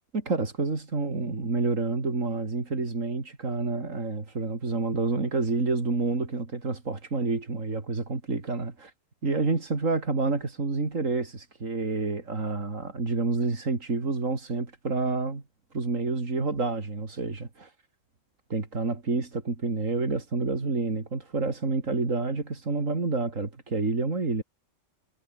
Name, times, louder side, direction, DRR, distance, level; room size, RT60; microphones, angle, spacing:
voice 1, 0.1-8.9 9.2-15.4 15.7-17.7 18.5-24.4, right 3 dB, 85° right, 3.6 m, -28 dB
omnidirectional pair, 1.3 m